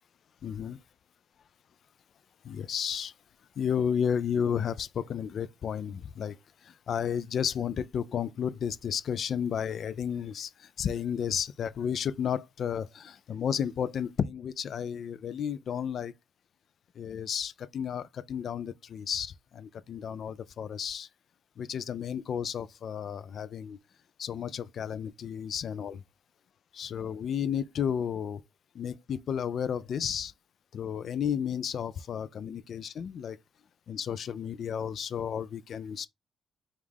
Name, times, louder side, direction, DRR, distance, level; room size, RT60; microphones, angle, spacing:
voice 1, 0.4-0.8 2.4-3.1 3.6-6.4 6.6-16.1 17.0-21.1 21.6-23.8 24.2-26.0 26.7-28.4 28.7-30.3 30.7-33.4 33.9-36.1, left 8 dB, 60° left, 0.3 m, -32 dB
5.2 x 2.4 x 3.3 m
cardioid pair, 90°, 0 cm